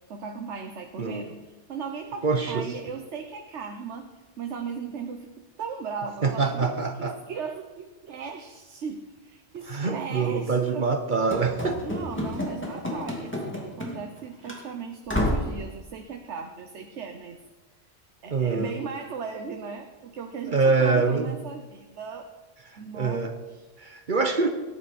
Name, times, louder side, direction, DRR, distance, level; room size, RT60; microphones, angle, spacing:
voice 1, 0.1-4.1 4.4-10.9 11.8-17.4 18.2-22.3 22.8-23.7, right 5 dB, 85° right, 5 dB, 1.2 m, -37 dB
voice 2, 2.2-2.7 6.2-7.2 9.7-11.8 18.3-18.8 20.5-21.3 22.9-23.3 23.8-24.5, right 4 dB, 45° right, 7 dB, 1.0 m, -24 dB
Run / Slam, 11.3-14.2 14.5-14.6 15.1-15.6, left 1 dB, 10° left, 2.4 m, -30 dB
19.0 x 11.0 x 4.2 m, 1.2 s
omnidirectional pair, 1.2 m